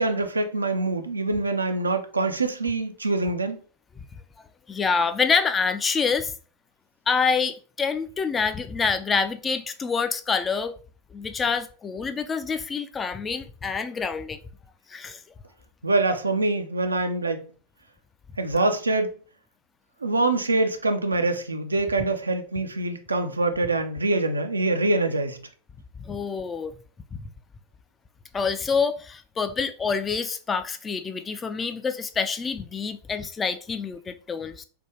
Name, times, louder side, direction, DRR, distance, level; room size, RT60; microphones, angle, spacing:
voice 1, 0.0-3.6 15.8-17.4 18.4-19.1 20.0-25.4, right 2 dB, 80° right, 0.4 m, -24 dB
voice 2, 4.7-6.3 7.1-10.7 11.1-14.4 14.9-15.2 26.0-26.7 27.1-27.2 28.3-34.6, left 5 dB, 20° left, 0.3 m, -26 dB
3.4 x 2.2 x 2.9 m
figure-of-eight pair, 90°, 0 cm